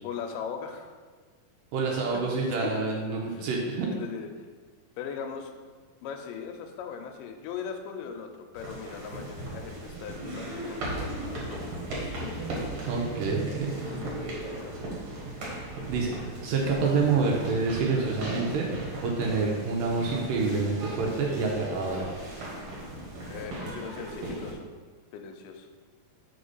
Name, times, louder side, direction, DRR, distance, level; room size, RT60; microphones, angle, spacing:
voice 1, 0.0-0.9 2.3-2.7 3.3-3.5 3.9-4.3 5.0-5.5 6.0-11.8 13.9-14.8 23.3-24.7 25.1-25.7, left 7 dB, 80° left, 4 dB, 2.1 m, -39 dB
voice 2, 1.7-3.9 12.9-13.7 15.9-16.1 16.4-18.7 19.0-22.1, right 4 dB, 80° right, -2 dB, 2.3 m, -27 dB
sound 1, 8.5-24.5, right 1 dB, 60° right, 2.0 m, -37 dB
5.0 x 4.3 x 5.4 m, 1.4 s
omnidirectional pair, 4.1 m